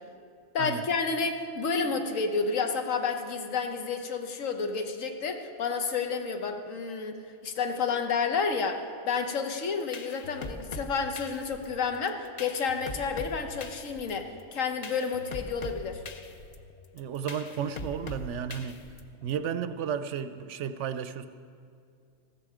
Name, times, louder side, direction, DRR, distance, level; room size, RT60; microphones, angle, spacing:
voice 1, 0.5-16.0, left 5 dB, 75° left, 6 dB, 1.4 m, -30 dB
sound 1, 9.6-19.3, left 3 dB, 40° left, 0.6 m, -42 dB
voice 2, 16.9-18.8 19.2-21.3, right 8 dB, 70° right, 11 dB, 0.8 m, -33 dB
15.0 x 13.5 x 4.9 m, 2.3 s
omnidirectional pair, 1.4 m